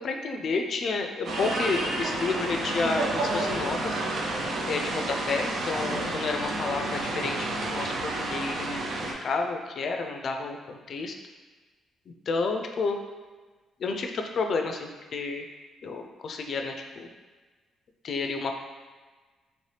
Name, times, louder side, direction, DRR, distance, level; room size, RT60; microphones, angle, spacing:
voice 1, 0.0-4.0 4.7-11.1 12.3-13.0 13.8-15.4 15.8-17.1 18.0-18.5, left 4 dB, 55° left, 4 dB, 0.4 m, -30 dB
sound 1, 1.2-9.1, right 2 dB, 65° right, 0.5 m, -30 dB
3.0 x 2.7 x 3.3 m, 1.3 s
cardioid pair, 90°, 0 cm